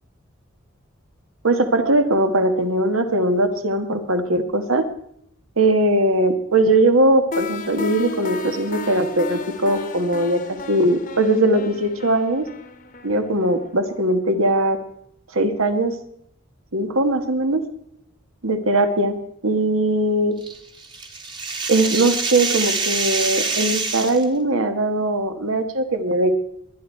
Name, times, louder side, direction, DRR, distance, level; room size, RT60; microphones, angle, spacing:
voice 1, 1.4-4.8 5.6-10.4 10.7-12.4 13.0-14.8 15.3-15.9 16.7-17.7 18.4-19.2 19.4-20.3 21.7-26.3, right 1 dB, 85° right, 7 dB, 1.6 m, -20 dB
sound 1, 7.3-14.1, left 3 dB, 40° left, 1.0 m, -33 dB
sound 2, 20.4-24.2, right 4 dB, 20° right, 1.2 m, -25 dB
21.0 x 10.5 x 4.5 m, 0.75 s
head